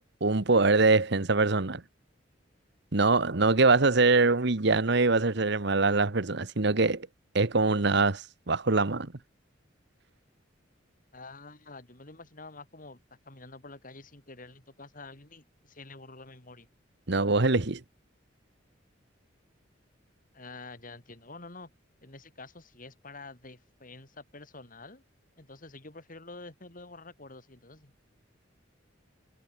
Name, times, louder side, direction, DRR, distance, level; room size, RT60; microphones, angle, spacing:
voice 1, 0.0-1.8 2.9-7.1 7.3-9.1 17.1-17.8, right 3 dB, 60° right, 1.3 m, -24 dB
voice 2, 11.1-16.7 20.3-21.7 22.0-25.0 25.4-27.9, left 3 dB, 45° left, 3.9 m, -48 dB
head